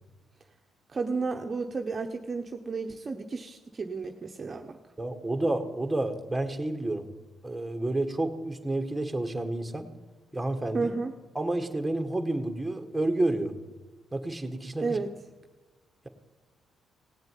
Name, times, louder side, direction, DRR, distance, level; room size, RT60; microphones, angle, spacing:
voice 1, 0.9-4.8 10.7-11.1 14.8-15.1, right 4 dB, 35° right, 3 dB, 1.0 m, -32 dB
voice 2, 5.0-7.1 7.4-9.9 10.3-10.9 11.3-13.5 14.1-15.0, right 2 dB, 10° right, 6 dB, 1.8 m, -30 dB
17.5 x 7.8 x 9.3 m, 1.3 s
cardioid pair, 90°, 0 cm